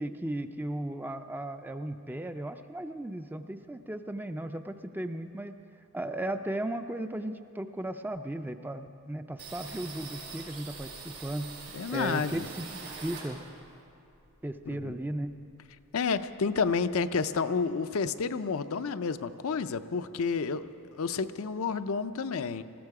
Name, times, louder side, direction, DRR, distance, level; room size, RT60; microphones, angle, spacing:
voice 1, 0.0-5.5 5.9-11.6 11.9-13.4 14.4-15.4, right 1 dB, 10° right, 8 dB, 0.4 m, -36 dB
sound 1, 9.4-13.7 14.1-15.4 15.7-15.8 16.1-16.8, right 4 dB, 80° right, 4.2 m, -44 dB
voice 2, 11.7-12.5 14.8-14.9 15.9-22.6, left 5 dB, 70° left, 10 dB, 0.5 m, -30 dB
20.5 x 14.5 x 4.8 m, 2.5 s
head